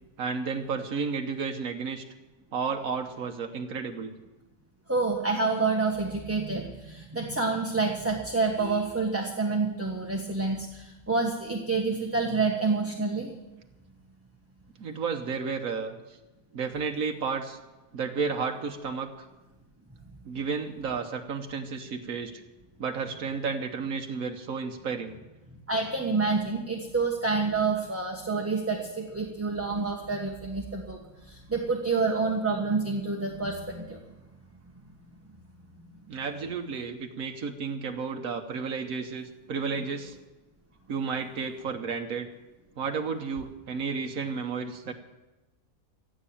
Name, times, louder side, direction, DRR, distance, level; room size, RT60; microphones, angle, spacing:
voice 1, 0.2-2.0 2.5-4.1 10.4-10.5 14.8-16.2 16.5-17.6 17.9-19.2 20.3-22.4 22.8-25.2 36.1-40.2 40.9-42.3 42.8-44.9, right 5 dB, 85° right, 4 dB, 1.5 m, -32 dB
voice 2, 4.9-13.3 25.7-34.0, right 4 dB, 10° right, 0 dB, 1.2 m, -28 dB
15.5 x 8.0 x 8.6 m, 1.1 s
omnidirectional pair, 1.4 m